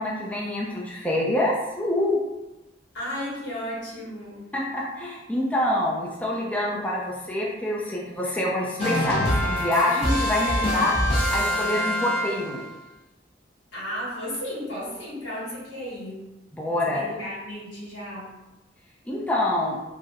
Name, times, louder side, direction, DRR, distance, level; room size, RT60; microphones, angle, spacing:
voice 1, 0.0-2.2 4.5-11.0 11.3-12.7 16.5-17.1 19.1-19.8, left 1 dB, 10° left, -4 dB, 0.3 m, -26 dB
voice 2, 2.9-4.5 13.7-16.2 16.8-18.3, equal, 85° left, -8 dB, 1.5 m, -34 dB
sound 1, 8.8-12.7, left 1 dB, 30° left, 0.7 m, -25 dB
3.0 x 2.7 x 2.4 m, 0.99 s
head